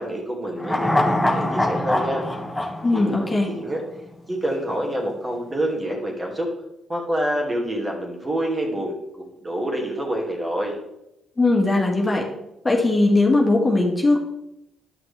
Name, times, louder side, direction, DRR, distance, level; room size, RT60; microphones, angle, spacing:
voice 1, 0.0-2.3 2.9-3.8 4.3-6.5 6.9-10.7, right 1 dB, 30° right, 0 dB, 2.4 m, -27 dB
sound 1, 0.6-4.0 4.3-4.4, left 1 dB, 10° left, 1.3 m, -24 dB
voice 2, 2.8-3.5 11.4-12.2 12.6-14.2, left 2 dB, 25° left, 0 dB, 1.8 m, -19 dB
9.3 x 5.9 x 3.4 m, 0.86 s
hypercardioid pair, 50°, 0 cm